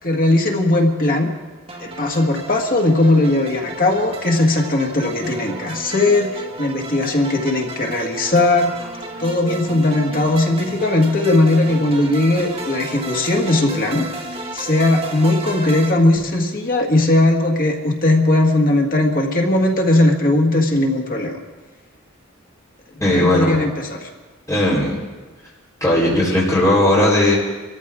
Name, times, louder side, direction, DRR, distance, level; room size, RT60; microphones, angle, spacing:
voice 1, 0.0-1.3 1.8-6.3 6.6-8.7 9.2-14.1 14.5-21.4 23.1-24.1, left 2 dB, 45° left, 2 dB, 1.8 m, -18 dB
sound 1, 1.7-15.9, right 2 dB, 30° right, 1.6 m, -33 dB
voice 2, 23.0-23.6 24.5-24.9 25.8-27.4, left 1 dB, 15° left, -6 dB, 4.1 m, -16 dB
26.0 x 14.0 x 3.7 m, 1.3 s
head